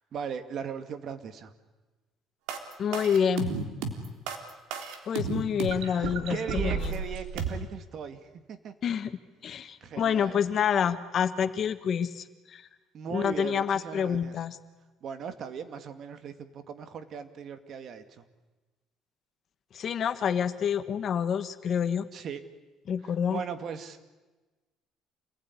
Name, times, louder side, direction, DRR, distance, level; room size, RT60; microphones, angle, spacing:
voice 1, 0.0-1.5 5.9-8.2 8.5-8.7 9.8-10.4 12.9-14.4 15.0-18.2 22.1-22.4 23.3-24.1, right 7 dB, 50° right, 10 dB, 2.2 m, -38 dB
sound 1, 2.5-7.5, right 6 dB, 90° right, 3.6 m, -32 dB
voice 2, 2.8-3.5 5.1-7.0 8.8-9.1 9.4-12.7 13.1-14.6 19.7-22.1 22.9-23.4, left 7 dB, 45° left, 11 dB, 1.5 m, -28 dB
28.0 x 20.5 x 9.9 m, 1.2 s
cardioid pair, 140°, 0 cm